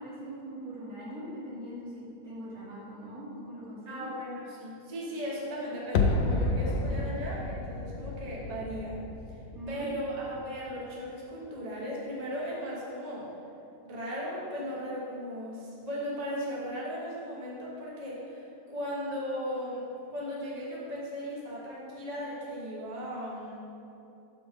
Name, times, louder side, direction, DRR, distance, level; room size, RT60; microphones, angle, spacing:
voice 1, 0.0-4.1 9.5-9.9, right 1 dB, 60° right, -8 dB, 2.2 m, -41 dB
voice 2, 3.9-8.9 9.7-13.3 13.8-23.6, equal, 30° right, -5 dB, 1.0 m, -37 dB
sound 1, 5.9-10.9 11.1-11.2, left 3 dB, 80° left, 0.5 m, -31 dB
6.8 x 4.4 x 5.1 m, 2.8 s
omnidirectional pair, 1.7 m